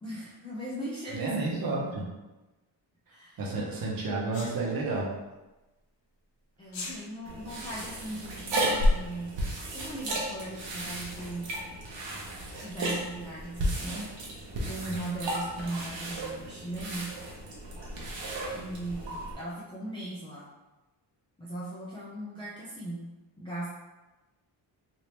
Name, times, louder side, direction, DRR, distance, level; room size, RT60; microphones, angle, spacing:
voice 1, 0.0-2.1 3.1-3.5 6.6-9.4 9.7-11.5 12.6-14.1 14.7-17.1 18.5-20.5 21.4-23.1 23.4-23.7, right 1 dB, 10° left, -9 dB, 0.4 m, -38 dB
voice 2, 1.1-2.0 3.4-5.1, right 3 dB, 50° right, -3 dB, 0.9 m, -31 dB
Sneeze, 4.3-4.5 6.6-7.0, left 3 dB, 80° left, 0.9 m, -38 dB
sound 1, 7.3-19.3, equal, 80° right, 0.9 m, -33 dB
3.3 x 2.6 x 3.0 m, 1.1 s
wide cardioid pair, 155°, 44 cm